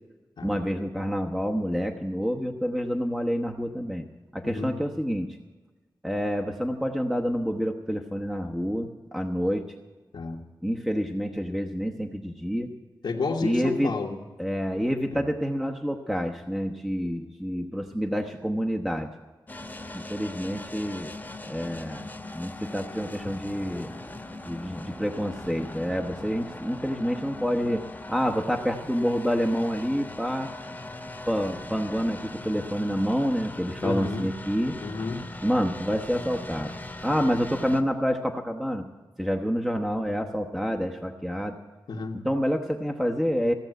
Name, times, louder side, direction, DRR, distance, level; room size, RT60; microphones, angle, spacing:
voice 1, 0.4-4.0 4.3-5.3 6.0-9.6 10.6-12.7 13.4-13.9 14.4-19.1 19.9-21.1 21.4-22.1 22.3-23.9 24.4-27.8 28.1-30.5 31.3-34.8 35.4-36.7 37.0-38.8 39.2-41.5 42.2-43.5, equal, 5° right, 2 dB, 1.0 m, -28 dB
voice 2, 4.4-4.7 10.1-10.4 13.0-14.2 15.1-15.2 33.8-34.3 34.8-35.2 41.9-42.2, left 4 dB, 75° left, -3 dB, 1.5 m, -31 dB
sound 1, 19.5-37.8, left 2 dB, 20° left, 1.2 m, -40 dB
16.0 x 7.1 x 9.1 m, 1.3 s
wide cardioid pair, 85°, 8 cm